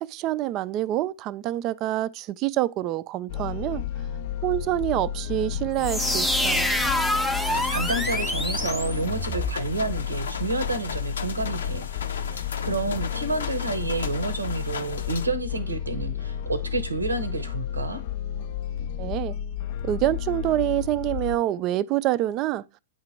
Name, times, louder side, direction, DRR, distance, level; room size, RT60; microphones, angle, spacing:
voice 1, 0.0-3.8 4.4-6.7 19.0-19.3 19.8-22.6, right 14 dB, 35° right, 0.3 m, -26 dB
sound 1, 3.3-21.4, left 9 dB, 50° left, 0.3 m, -32 dB
sound 2, 5.8-9.6, left 1 dB, ahead, 0.6 m, -26 dB
sound 3, 7.4-15.3, left 6 dB, 75° left, 0.7 m, -37 dB
voice 2, 7.7-11.9 12.1-18.0, right 3 dB, 90° right, 0.8 m, -29 dB
8.7 x 2.9 x 4.4 m
hypercardioid pair, 110°, 0 cm